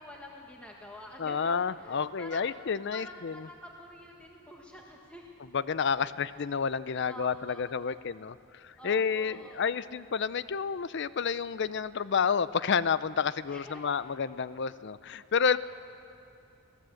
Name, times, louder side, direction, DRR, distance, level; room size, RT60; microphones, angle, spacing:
voice 1, 0.0-2.5 2.9-5.3 6.0-6.1 7.1-8.0 8.8-9.9 13.5-13.9 15.5-15.6, equal, 5° left, -1 dB, 1.6 m, -48 dB
voice 2, 1.2-3.5 5.5-15.6, left 6 dB, 55° left, 16 dB, 0.5 m, -30 dB
26.0 x 17.0 x 7.7 m, 2.6 s
head